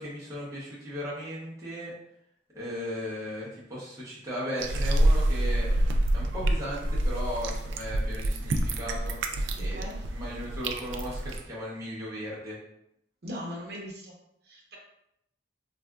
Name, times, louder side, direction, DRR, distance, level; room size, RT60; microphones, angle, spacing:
voice 1, 0.0-1.9 2.5-5.7 6.1-9.2 9.6-9.8 10.1-12.6, equal, 20° right, -7 dB, 0.7 m, -36 dB
sound 1, 4.6-11.4, right 1 dB, 85° right, 0.3 m, -27 dB
voice 2, 9.5-10.0 13.2-14.1 14.5-14.8, equal, 60° right, -1 dB, 0.7 m, -39 dB
3.6 x 2.4 x 2.2 m, 0.79 s
head